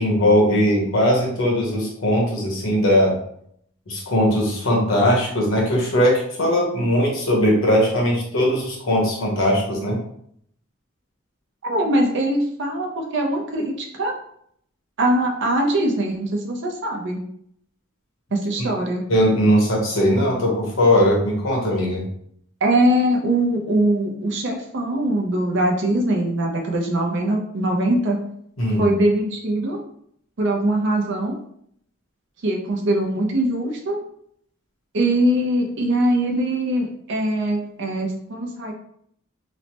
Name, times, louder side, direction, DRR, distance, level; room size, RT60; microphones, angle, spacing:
voice 1, 0.0-3.2 3.9-10.0 19.1-22.0 28.6-28.9, equal, 70° left, -2 dB, 0.9 m, -19 dB
voice 2, 11.6-14.1 15.0-17.2 18.3-19.0 22.6-28.2 28.8-29.8 30.4-31.4 32.4-34.0 34.9-38.7, right 1 dB, 60° right, 1 dB, 0.6 m, -22 dB
3.1 x 2.0 x 2.8 m, 0.69 s
head